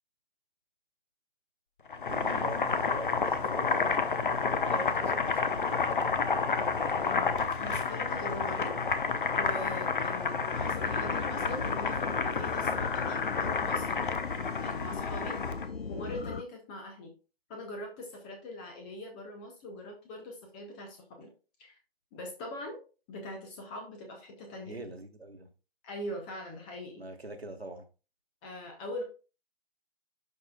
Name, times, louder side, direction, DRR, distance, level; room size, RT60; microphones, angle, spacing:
Boiling, 1.9-15.7, left 5 dB, 55° left, 1.0 m, -30 dB
voice 1, 2.1-4.1 4.7-5.6 24.7-25.5 27.0-27.9, right 2 dB, 90° right, 1.6 m, -43 dB
voice 2, 6.8-8.8 9.3-13.9 14.6-15.4 15.9-17.1 17.5-21.3 21.6-21.7 22.1-22.8 23.1-24.8 25.8-27.1 28.4-29.0, left 1 dB, 10° left, 0.5 m, -42 dB
sound 1, 10.5-16.4, left 4 dB, 75° left, 0.7 m, -38 dB
11.5 x 4.5 x 2.3 m
figure-of-eight pair, 135°, 30 cm